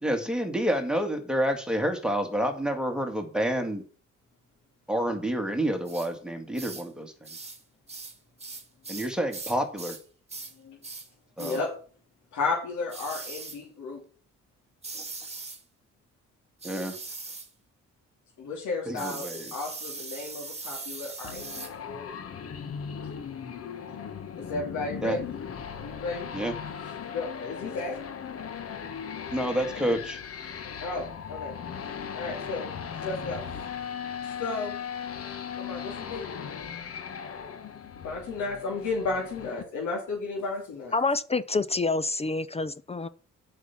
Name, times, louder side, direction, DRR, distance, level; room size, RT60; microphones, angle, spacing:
voice 1, 0.0-3.8 4.9-7.1 8.9-10.0 11.4-11.6 16.6-16.9 18.9-19.5 25.0-25.2 26.3-26.5 29.3-30.2, right 1 dB, 5° right, 2.0 m, -28 dB
sound 1, 5.9-6.1 6.5-6.9 7.2-7.6 7.9-10.0 10.3-10.5 10.8-11.1 11.4-11.6 12.9-13.6 14.8-15.6 16.6-17.5 19.0-21.7, right 3 dB, 20° right, 2.0 m, -40 dB
voice 2, 11.4-11.7 12.3-14.0 18.4-22.1 24.4-25.4 25.8-26.3 27.1-28.0 30.8-31.5 32.1-33.5 34.2-34.8 35.5-36.3 37.0-37.1 37.9-41.0, left 3 dB, 75° left, 3.2 m, -33 dB
sound 2, 21.2-39.6, left 7 dB, 50° left, 1.3 m, -38 dB
voice 3, 40.9-43.1, left 3 dB, 20° left, 0.5 m, -27 dB
8.1 x 5.8 x 7.3 m
cardioid pair, 90°, 30 cm